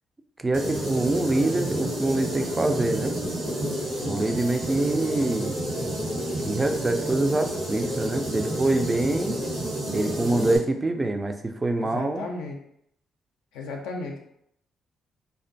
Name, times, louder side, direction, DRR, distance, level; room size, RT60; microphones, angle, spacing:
voice 1, 0.4-3.2 4.1-5.6 6.4-9.4 9.9-12.3, right 2 dB, 25° right, 6 dB, 0.3 m, -25 dB
sound 1, 0.5-10.6, right 1 dB, 80° right, 1.0 m, -30 dB
voice 2, 3.6-4.2 11.8-12.6 13.5-14.2, left 3 dB, 85° left, 0 dB, 0.3 m, -35 dB
2.4 x 2.1 x 2.5 m, 0.73 s
supercardioid pair, 55°, 0 cm